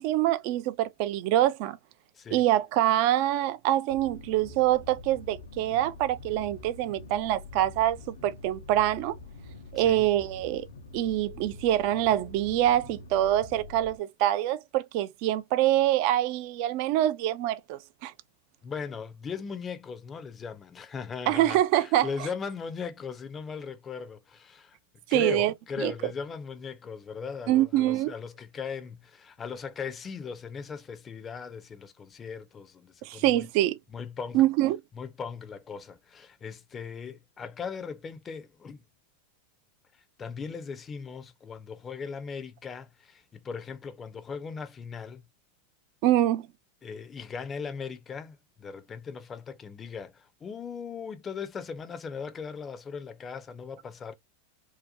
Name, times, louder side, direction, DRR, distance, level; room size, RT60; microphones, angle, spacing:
voice 1, 0.0-1.8 2.3-9.1 9.7-10.7 10.9-18.1 21.3-22.3 25.1-25.9 27.5-28.1 33.0-33.8 34.3-34.8 46.0-46.5, right 13 dB, 55° right, 0.4 m, -25 dB
sound 1, 3.9-14.0, left 3 dB, 80° left, 0.5 m, -46 dB
voice 2, 9.8-10.1 18.6-24.8 25.1-33.4 33.9-34.4 34.9-38.8 40.2-45.2 46.8-54.1, left 5 dB, 25° left, 0.5 m, -38 dB
2.8 x 2.1 x 2.5 m
hypercardioid pair, 95°, 0 cm